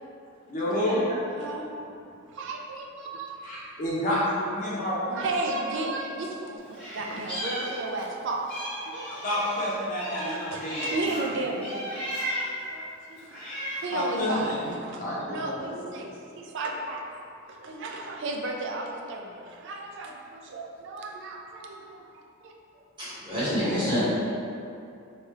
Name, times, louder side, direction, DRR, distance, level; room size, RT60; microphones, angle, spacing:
voice 1, 0.5-1.1 3.4-5.2 9.2-11.4 13.9-16.1, left 1 dB, 35° left, -8 dB, 0.5 m, -29 dB
voice 2, 1.4-1.7 2.3-3.4 5.1-8.5 8.8-9.6 10.2-12.0 12.4-13.2 13.8-16.1 16.4-17.1 17.5-22.5, right 2 dB, 55° right, 1 dB, 0.3 m, -34 dB
Meow, 6.7-8.1 8.5-11.2 11.6-12.6 13.2-14.0, equal, 5° left, 0.9 m, -35 dB
voice 3, 23.0-24.0, equal, 20° right, -13 dB, 1.2 m, -27 dB
3.1 x 2.2 x 3.2 m, 2.5 s
head